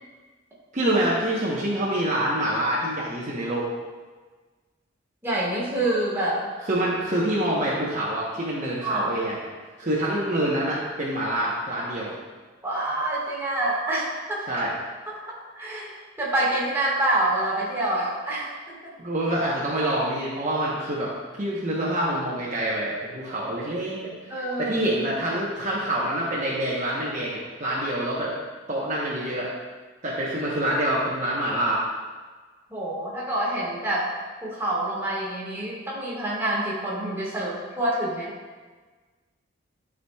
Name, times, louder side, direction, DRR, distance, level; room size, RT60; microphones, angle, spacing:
voice 1, 0.7-3.7 6.6-9.5 9.8-12.2 14.5-14.7 19.0-21.1 21.4-24.0 24.6-28.3 28.7-29.5 30.0-31.8, right 1 dB, 40° right, -6 dB, 0.9 m, -26 dB
voice 2, 5.2-6.4 8.8-9.1 12.6-14.6 15.1-18.9 24.3-24.7 32.7-34.1 34.4-38.3, right 1 dB, 10° right, -6 dB, 1.6 m, -27 dB
11.0 x 4.9 x 2.3 m, 1.4 s
head